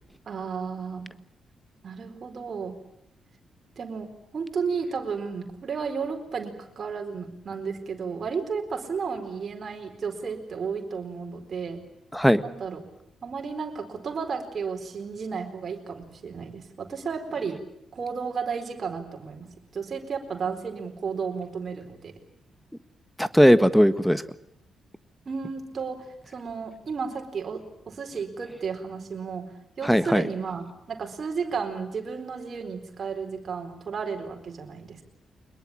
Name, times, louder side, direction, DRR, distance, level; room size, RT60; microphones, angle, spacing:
voice 1, 0.3-1.1 1.8-2.8 3.8-11.8 12.4-12.8 13.2-17.6 17.9-22.1 25.3-35.0, right 5 dB, 50° right, 3 dB, 4.4 m, -33 dB
voice 2, 23.2-24.2 29.8-30.2, equal, ahead, 14 dB, 1.5 m, -18 dB
23.5 x 21.5 x 8.8 m, 0.79 s
hypercardioid pair, 40°, 0 cm